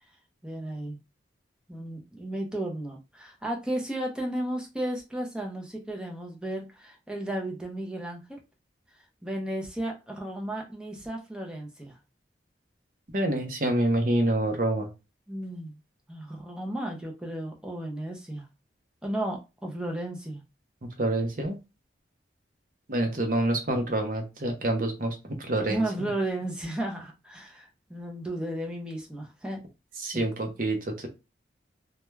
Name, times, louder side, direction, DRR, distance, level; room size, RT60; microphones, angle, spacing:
voice 1, 0.4-1.0 1.7-8.4 9.2-12.0 15.3-15.8 16.1-18.5 19.0-20.4 25.7-29.6 30.1-30.3, right 1 dB, 5° right, 1 dB, 0.5 m, -34 dB
voice 2, 13.1-14.9 21.0-21.6 22.9-26.1 30.0-31.1, right 1 dB, 50° right, 4 dB, 0.6 m, -27 dB
2.2 x 2.2 x 3.1 m, 0.27 s
head